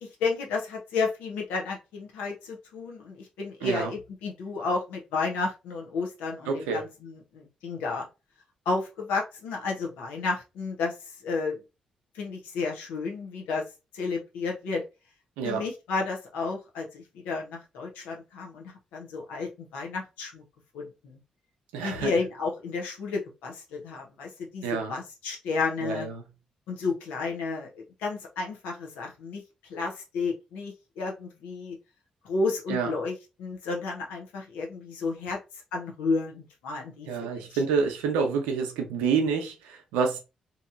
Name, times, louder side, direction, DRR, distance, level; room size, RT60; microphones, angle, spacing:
voice 1, 0.0-8.1 8.7-11.0 11.2-11.6 12.1-13.6 13.9-14.8 15.4-20.4 20.7-21.2 21.8-26.1 26.7-31.8 32.2-35.4 35.7-37.5, left 4 dB, 85° left, 0.8 m, -32 dB
voice 2, 3.6-3.9 6.5-6.8 15.4-15.6 21.7-22.1 24.6-24.9 25.8-26.2 32.7-32.9 37.1-40.2, right 5 dB, 90° right, 0.6 m, -28 dB
2.9 x 2.7 x 2.4 m
hypercardioid pair, 45°, 3 cm